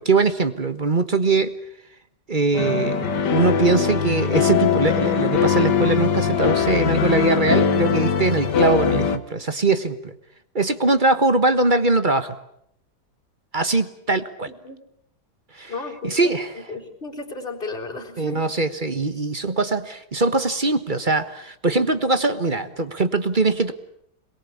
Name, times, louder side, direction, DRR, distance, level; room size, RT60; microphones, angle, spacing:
voice 1, 0.0-1.5 2.3-10.1 10.5-12.3 13.5-14.5 15.5-15.7 16.0-16.5 18.2-23.7, right 3 dB, 30° right, 11 dB, 1.5 m, -21 dB
sound 1, 2.5-9.2, left 7 dB, 85° left, 2.1 m, -21 dB
voice 2, 14.5-14.8 15.7-16.2 16.5-18.4, left 3 dB, 30° left, 0 dB, 4.3 m, -34 dB
27.5 x 22.0 x 8.7 m, 0.71 s
omnidirectional pair, 1.8 m